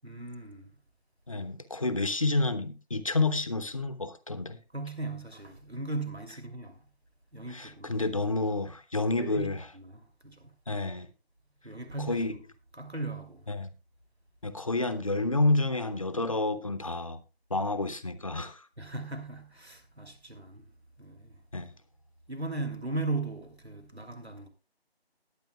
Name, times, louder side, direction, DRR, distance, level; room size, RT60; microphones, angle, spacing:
voice 1, 0.0-0.7 4.7-6.8 7.3-7.9 9.2-10.5 11.6-12.4 12.7-13.4 18.8-20.7 21.0-21.3 22.3-24.5, right 2 dB, 90° right, 2.9 m, -37 dB
voice 2, 1.3-4.6 7.5-9.7 10.7-11.1 12.1-12.4 13.5-13.7 14.4-17.2 17.5-18.7 21.5-21.7, left 2 dB, 35° left, 0.8 m, -29 dB
20.0 x 9.0 x 2.3 m
figure-of-eight pair, 160°, 31 cm